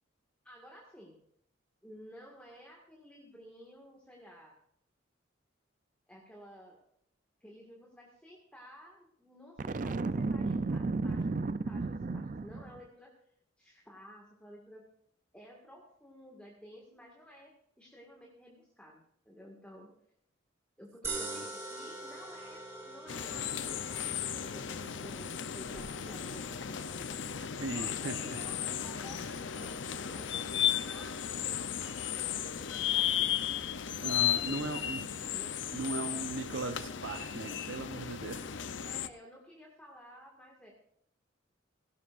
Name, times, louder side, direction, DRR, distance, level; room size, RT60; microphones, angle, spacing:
voice 1, 0.4-1.2 1.8-4.5 6.1-6.8 7.4-13.1 13.6-14.9 15.3-19.9 20.8-27.2 27.7-31.2 31.8-33.2 34.1-35.0 35.3-35.6 38.8-40.7, equal, 5° left, -2 dB, 1.9 m, -53 dB
Boom, 9.6-12.8, right 3 dB, 40° right, 0.5 m, -33 dB
sound 1, 21.0-33.4, right 3 dB, 15° right, 2.4 m, -47 dB
voice 2, 21.1-21.4 27.6-28.4 29.0-29.3 34.0-35.1 35.7-38.5, right 3 dB, 75° right, 6 dB, 0.9 m, -38 dB
sound 2, 23.1-39.1, left 9 dB, 70° left, 0.6 m, -35 dB
17.0 x 17.0 x 2.6 m, 0.71 s
head